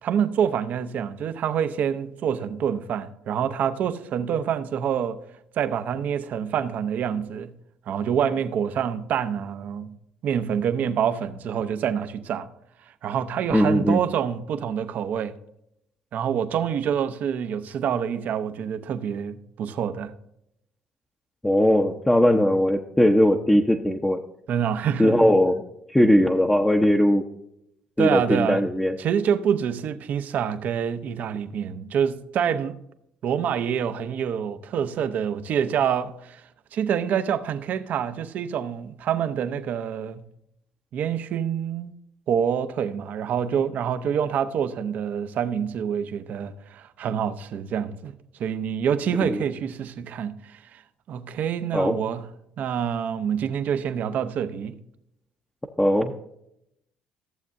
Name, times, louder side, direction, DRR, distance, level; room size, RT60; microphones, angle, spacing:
voice 1, 0.0-5.2 5.6-7.5 7.9-10.0 10.2-12.5 13.0-15.4 16.1-20.1 24.5-25.3 28.0-28.6 29.0-32.8 33.2-36.4 36.7-40.2 40.9-41.9 42.3-50.8 51.1-52.3 52.6-54.8, right 8 dB, 60° right, 0.7 m, -26 dB
voice 2, 13.5-14.0 21.4-24.2 25.0-25.6 25.9-27.2 28.0-29.0 49.2-49.4 51.7-51.9 55.8-56.1, left 1 dB, 10° left, 0.8 m, -19 dB
14.5 x 7.2 x 2.6 m
supercardioid pair, 70°, 3 cm